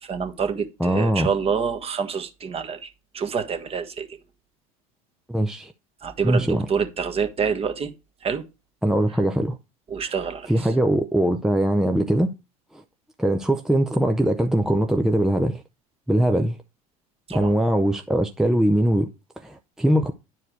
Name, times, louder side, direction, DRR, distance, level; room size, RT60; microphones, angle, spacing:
voice 1, 0.0-4.1 6.0-7.9 8.2-8.4 9.9-10.7 17.3-17.5, right 6 dB, 30° right, 1.5 m, -27 dB
voice 2, 0.8-1.3 5.3-5.7 6.2-6.7 8.8-9.6 10.5-12.3 13.2-15.6 16.1-16.6 17.3-19.1 19.4-20.1, right 1 dB, 5° right, 0.6 m, -21 dB
9.8 x 4.7 x 4.6 m
hypercardioid pair, 85°, 19 cm